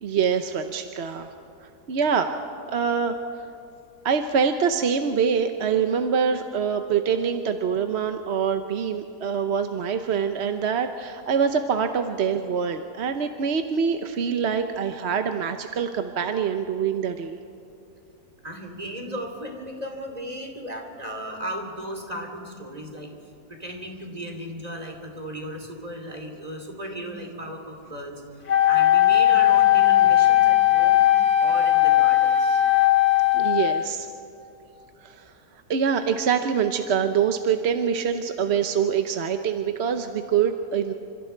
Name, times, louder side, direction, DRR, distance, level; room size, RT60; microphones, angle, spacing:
voice 1, 0.0-1.3 1.6-2.3 2.7-3.2 4.0-17.4 33.3-34.1 35.0-35.3 35.7-40.9, right 7 dB, 50° right, 7 dB, 0.9 m, -25 dB
voice 2, 18.4-23.1 23.5-28.2 28.6-31.0 31.4-32.6, equal, 25° right, 2 dB, 3.0 m, -36 dB
Wind instrument woodwind instrument, 28.5-34.0, left 13 dB, 70° left, 1.9 m, -18 dB
28.5 x 26.0 x 4.5 m, 2.7 s
omnidirectional pair, 1.7 m